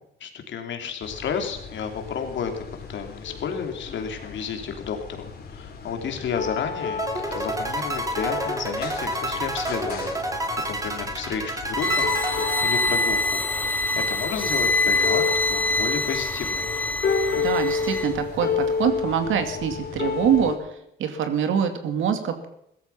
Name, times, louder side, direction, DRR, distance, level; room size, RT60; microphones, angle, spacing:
voice 1, 0.2-2.6 2.9-10.4 10.7-13.8 14.1-16.7, left 6 dB, 70° left, 5 dB, 3.0 m, -32 dB
sound 1, 1.0-20.6, left 5 dB, 55° left, 3.5 m, -31 dB
sound 2, 7.0-13.3, right 1 dB, 15° right, 2.5 m, -30 dB
sound 3, 11.8-18.1, left 2 dB, 10° left, 1.1 m, -25 dB
voice 2, 17.4-20.6 21.0-22.5, right 8 dB, 80° right, 7 dB, 2.4 m, -24 dB
16.5 x 13.5 x 5.8 m, 0.76 s
cardioid pair, 90°, 20 cm